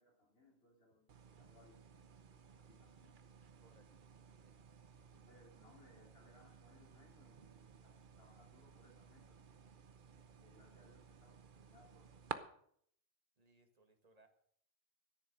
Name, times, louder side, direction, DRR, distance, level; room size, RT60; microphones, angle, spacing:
voice 1, 0.0-2.2 2.6-3.1 5.1-9.6 10.4-12.2, left 1 dB, 65° left, 0 dB, 3.7 m, -67 dB
sound 1, 1.1-12.4, right 6 dB, 55° right, 0.9 m, -55 dB
voice 2, 3.6-4.1 13.4-14.3, right 2 dB, 35° right, 6 dB, 1.8 m, -69 dB
13.5 x 10.5 x 6.3 m, 0.64 s
omnidirectional pair, 1.1 m